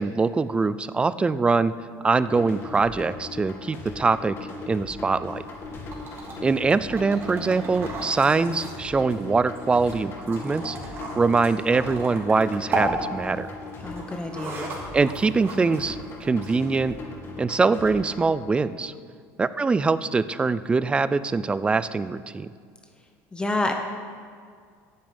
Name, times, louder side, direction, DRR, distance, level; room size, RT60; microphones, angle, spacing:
voice 1, 0.0-1.7 2.0-4.4 4.7-5.4 6.4-10.8 11.2-13.5 14.9-17.0 17.4-18.9 19.4-22.5, right 4 dB, 15° right, 15 dB, 0.4 m, -23 dB
sound 1, 2.2-18.2, left 3 dB, 35° left, 2.1 m, -39 dB
sound 2, 5.3-16.9, right 2 dB, 35° right, 2.6 m, -36 dB
voice 2, 7.2-7.6 13.8-14.7 23.3-23.7, left 2 dB, 15° left, 4 dB, 0.8 m, -29 dB
9.7 x 7.3 x 8.7 m, 2.1 s
cardioid pair, 125°, 7 cm